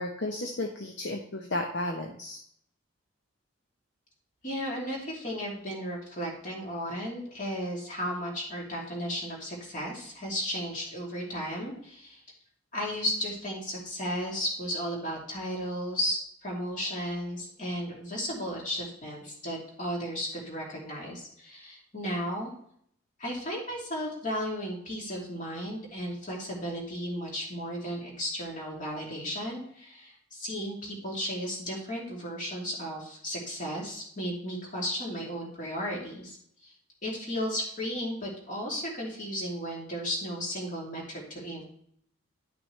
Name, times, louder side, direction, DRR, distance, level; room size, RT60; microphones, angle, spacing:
voice 1, 0.0-2.4, left 1 dB, 55° left, 2 dB, 0.8 m, -33 dB
voice 2, 4.4-12.2 12.7-22.5 23.2-36.4 36.6-36.7 37.0-41.6, equal, 40° left, -3 dB, 2.6 m, -34 dB
11.0 x 6.0 x 3.2 m, 0.66 s
head